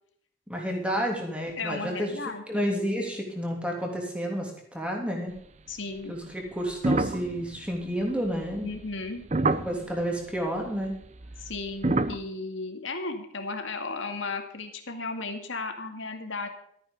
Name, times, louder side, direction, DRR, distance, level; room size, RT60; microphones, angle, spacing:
voice 1, 0.5-2.1 2.5-5.3 6.1-8.7 9.4-10.9, equal, 5° right, 0 dB, 3.1 m, -30 dB
voice 2, 1.6-2.4 5.7-6.2 8.6-9.3 11.4-16.5, left 3 dB, 70° left, 5 dB, 2.2 m, -35 dB
sound 1, 6.7-10.0 11.1-12.2, right 2 dB, 35° right, 0.6 m, -27 dB
14.0 x 9.4 x 5.3 m, 0.68 s
head